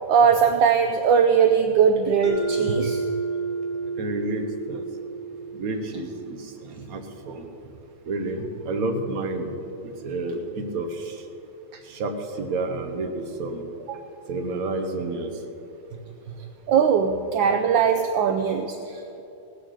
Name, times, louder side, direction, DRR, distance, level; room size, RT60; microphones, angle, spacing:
voice 1, 0.1-3.0 13.9-14.0 16.7-19.2, right 6 dB, 70° right, 6 dB, 1.3 m, -20 dB
Mallet percussion, 2.2-6.8, right 4 dB, 40° left, 2.7 m, -31 dB
voice 2, 4.0-4.8 5.6-6.4 6.7-7.5 8.0-9.5 9.8-11.1 11.9-13.6 14.3-15.3, right 2 dB, 50° right, 4 dB, 1.4 m, -30 dB
17.0 x 7.7 x 6.4 m, 3.0 s
omnidirectional pair, 2.4 m